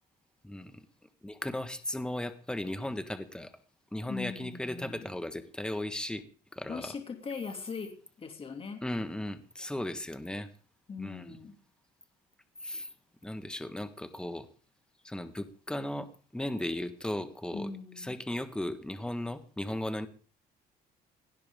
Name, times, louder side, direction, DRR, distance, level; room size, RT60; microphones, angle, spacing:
voice 1, 0.4-0.8 1.2-3.5 3.9-6.2 6.5-6.9 8.8-10.5 11.0-11.4 12.6-12.9 13.2-14.5 15.0-17.7 18.0-20.1, left 1 dB, 5° left, 10 dB, 1.5 m, -36 dB
voice 2, 4.1-5.1 6.7-8.8 10.9-11.6 17.5-18.2, left 5 dB, 35° left, 5 dB, 2.6 m, -40 dB
18.5 x 16.5 x 3.7 m, 0.40 s
cardioid pair, 110°, 17 cm